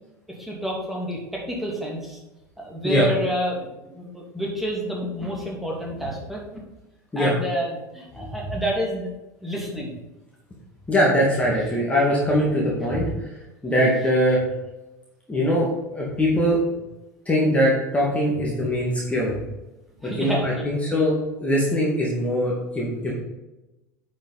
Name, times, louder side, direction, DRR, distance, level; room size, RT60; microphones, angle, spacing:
voice 1, 0.4-2.2 2.6-6.4 7.2-9.1 9.4-9.9 13.8-13.9 20.0-20.6, equal, ahead, -3 dB, 2.7 m, -29 dB
voice 2, 10.9-13.3 13.6-14.4 15.3-15.7 15.9-16.6 17.3-19.4 20.0-21.1 21.4-23.1, equal, 15° left, -4 dB, 2.3 m, -22 dB
10.0 x 5.3 x 4.1 m, 1.0 s
figure-of-eight pair, 80°, 10 cm